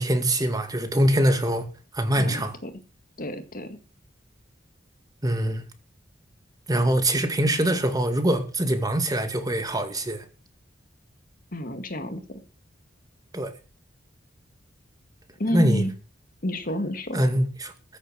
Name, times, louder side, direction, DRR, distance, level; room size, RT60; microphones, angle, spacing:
voice 1, 0.0-1.7 1.9-2.6 5.2-5.6 6.7-10.2 13.3-13.5 15.5-15.9 17.1-18.0, right 1 dB, 20° right, 2.1 m, -23 dB
voice 2, 2.2-2.7 3.2-3.8 11.5-12.2 15.4-15.9 16.4-17.2, left 1 dB, 50° left, 1.9 m, -30 dB
14.5 x 8.1 x 6.7 m
head